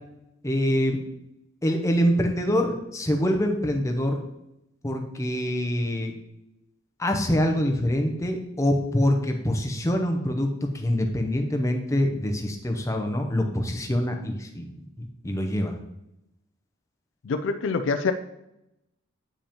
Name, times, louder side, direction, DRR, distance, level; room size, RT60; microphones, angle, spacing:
voice 1, 0.4-1.0 1.6-4.2 4.8-6.1 7.0-14.7 15.0-15.7, equal, 15° left, 3 dB, 0.6 m, -25 dB
voice 2, 17.2-18.1, left 4 dB, 60° left, 9 dB, 0.4 m, -25 dB
8.6 x 5.2 x 2.9 m, 0.87 s
head